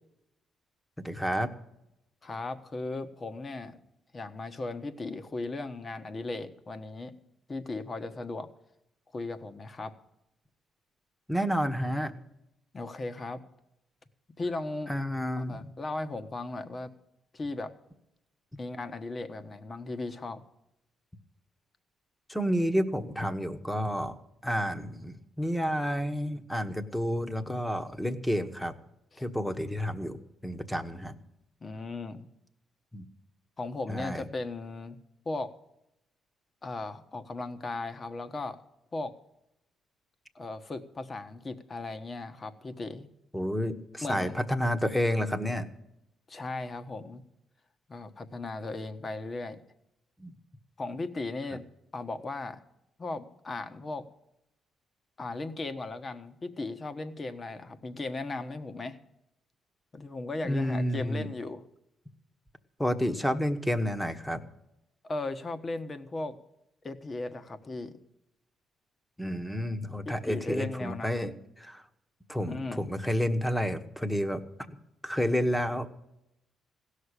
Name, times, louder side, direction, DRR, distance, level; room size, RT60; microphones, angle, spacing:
voice 1, 1.0-1.5 11.3-12.1 14.9-15.7 22.3-24.1 24.4-28.7 29.2-30.2 30.4-31.1 32.9-33.0 33.9-34.2 43.3-45.7 50.2-50.3 60.4-61.3 62.8-64.4 69.2-71.3 71.6-71.8 72.3-74.4 74.7-74.8 75.0-76.1, equal, 5° left, 9 dB, 1.2 m, -30 dB
voice 2, 2.2-3.8 4.1-7.1 7.5-8.5 9.1-9.9 12.7-13.4 14.4-14.9 15.4-16.9 17.3-17.7 18.6-20.4 29.1-29.3 31.6-32.3 33.6-35.0 35.2-35.5 36.6-38.6 38.9-39.1 40.3-43.1 44.0-44.3 46.3-47.2 47.9-49.6 50.8-51.6 51.9-52.6 53.0-54.0 55.2-59.0 59.9-61.6 65.1-66.4 66.8-67.9 70.0-71.3 72.5-72.8, left 2 dB, 35° left, 10 dB, 1.3 m, -37 dB
16.5 x 6.5 x 9.9 m, 0.84 s
cardioid pair, 90°, 0 cm